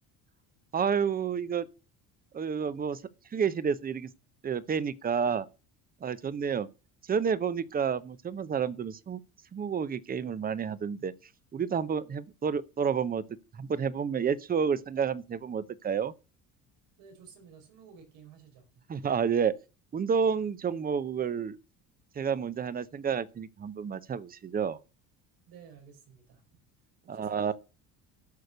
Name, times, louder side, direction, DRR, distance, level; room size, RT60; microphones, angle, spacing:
voice 1, 0.7-1.7 2.3-3.0 3.3-4.1 4.4-5.5 6.0-6.7 7.0-9.2 9.5-11.1 11.5-13.2 13.5-16.1 18.9-19.6 19.9-21.6 22.1-24.8 27.1-27.5, right 7 dB, 25° right, 0.8 m, -30 dB
voice 2, 17.0-18.7 25.5-26.4 27.0-27.5, right 6 dB, 85° right, 5.0 m, -53 dB
11.5 x 6.6 x 6.6 m
cardioid pair, 135°, 36 cm